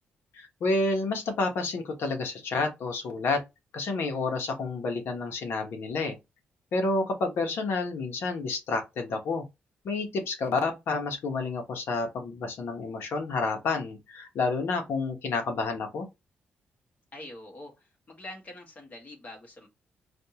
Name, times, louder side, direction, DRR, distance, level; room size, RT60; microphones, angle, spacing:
voice 1, 0.3-3.4 3.7-6.2 6.7-9.4 9.8-16.1, left 3 dB, 75° left, 1.2 m, -29 dB
voice 2, 17.1-19.7, left 1 dB, 45° left, 1.8 m, -45 dB
5.1 x 2.6 x 3.0 m
cardioid pair, 105°, 4 cm